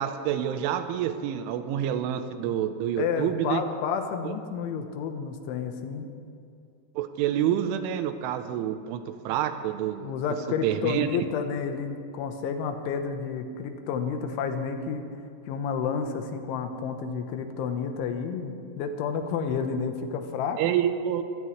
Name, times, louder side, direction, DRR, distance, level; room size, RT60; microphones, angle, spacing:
voice 1, 0.0-3.6 4.2-4.3 7.0-10.1 10.6-11.1 20.6-21.2, right 10 dB, 85° right, 9 dB, 3.2 m, -28 dB
voice 2, 3.0-6.1 10.0-15.0 15.4-20.6, left 6 dB, 80° left, 6 dB, 3.4 m, -30 dB
24.5 x 16.0 x 3.2 m, 2.5 s
omnidirectional pair, 5.5 m